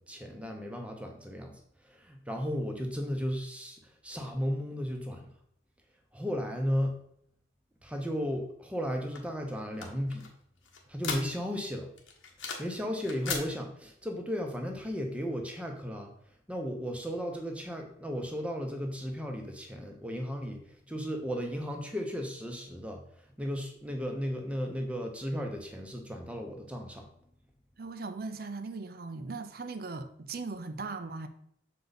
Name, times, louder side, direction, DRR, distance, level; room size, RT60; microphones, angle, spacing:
voice 1, 0.1-1.5 1.8-5.3 6.1-7.0 7.8-10.3 10.9-11.9 12.6-16.1 16.5-23.0 23.4-27.1, equal, 5° right, 3 dB, 0.8 m, -35 dB
sound 1, 9.1-11.6 12.0-12.8 13.0-13.5, left 5 dB, 90° left, 1.3 m, -38 dB
voice 2, 27.8-31.3, right 3 dB, 50° right, 8 dB, 0.5 m, -39 dB
6.7 x 4.6 x 4.0 m, 0.70 s
head